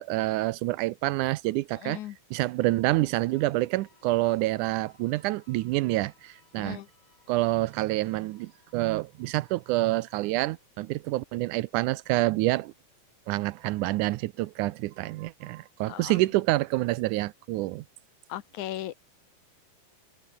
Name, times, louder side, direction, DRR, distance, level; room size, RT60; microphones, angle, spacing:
voice 1, 0.0-2.0 2.3-6.8 7.3-12.7 13.3-17.8, right 18 dB, 80° right, 1.8 m, -27 dB
voice 2, 1.8-2.2 6.6-6.9 15.9-16.2 18.3-18.9, left 13 dB, 70° left, 2.1 m, -37 dB
sound 1, 2.5-11.9, left 4 dB, 50° left, 7.4 m, -65 dB
omnidirectional pair, 4.2 m